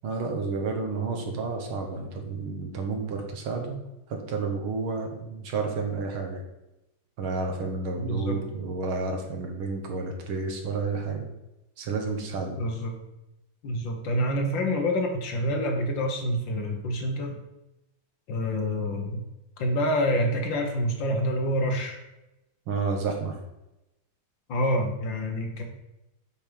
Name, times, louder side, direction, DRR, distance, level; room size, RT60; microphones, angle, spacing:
voice 1, 0.0-3.8 4.1-6.4 7.2-11.3 11.8-12.6 22.7-23.4, right 4 dB, 75° right, 3 dB, 2.1 m, -31 dB
voice 2, 8.1-8.4 12.6-13.0 13.6-17.4 18.3-19.2 19.6-22.0 24.5-25.6, equal, 65° left, 3 dB, 1.9 m, -27 dB
7.6 x 5.4 x 5.1 m, 0.94 s
omnidirectional pair, 2.3 m